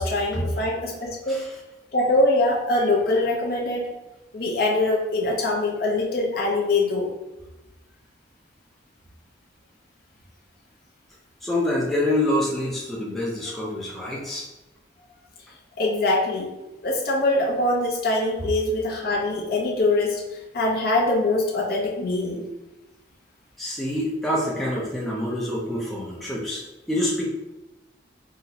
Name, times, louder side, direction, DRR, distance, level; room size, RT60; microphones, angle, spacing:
voice 1, 0.0-1.4 1.9-3.9 4.3-7.1 15.8-16.5 16.8-22.4, left 2 dB, 55° left, -2 dB, 0.6 m, -23 dB
voice 2, 11.4-14.5 23.6-27.3, left 1 dB, ahead, -5 dB, 0.4 m, -26 dB
3.8 x 2.0 x 2.8 m, 1.0 s
head